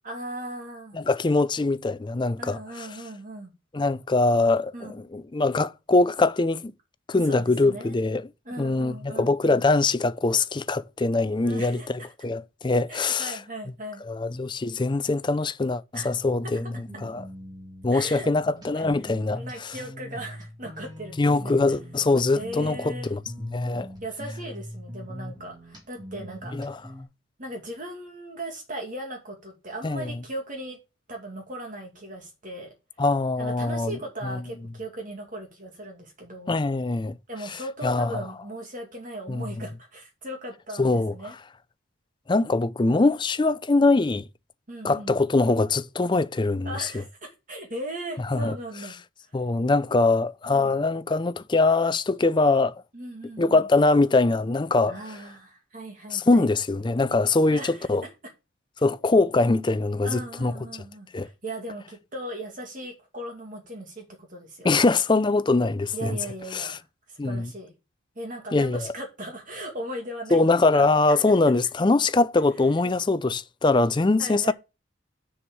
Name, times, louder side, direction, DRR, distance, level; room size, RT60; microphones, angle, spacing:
voice 1, 0.0-1.0 2.4-3.5 4.7-5.0 7.2-7.9 8.5-9.6 11.4-11.9 12.9-14.0 15.9-16.1 17.9-18.3 18.7-18.8 19.3-21.8 22.3-23.2 24.0-26.6 27.4-30.8 31.1-32.7 33.4-36.6 37.3-41.4 44.7-45.2 46.6-49.0 50.5-50.8 52.9-53.7 54.8-56.5 57.5-57.9 60.0-64.7 65.9-67.7 68.2-71.3 74.2-74.5, right 1 dB, 40° right, 2.4 m, -38 dB
voice 2, 0.9-2.9 3.7-6.7 7.1-8.3 8.6-13.4 14.1-17.2 17.8-19.7 21.2-23.9 26.5-26.8 29.8-30.1 33.0-34.0 34.2-34.4 36.5-37.2 37.8-38.2 39.3-39.4 40.8-41.1 42.3-44.2 44.8-47.0 48.3-48.5 49.3-52.8 53.4-55.0 56.1-58.0 58.8-60.5 61.1-61.3 64.6-66.2 66.5-66.8 67.2-67.5 68.5-68.9 70.3-74.5, left 3 dB, 20° left, 0.4 m, -23 dB
sound 1, 15.9-27.0, left 1 dB, 20° right, 2.2 m, -40 dB
7.1 x 6.2 x 7.1 m
head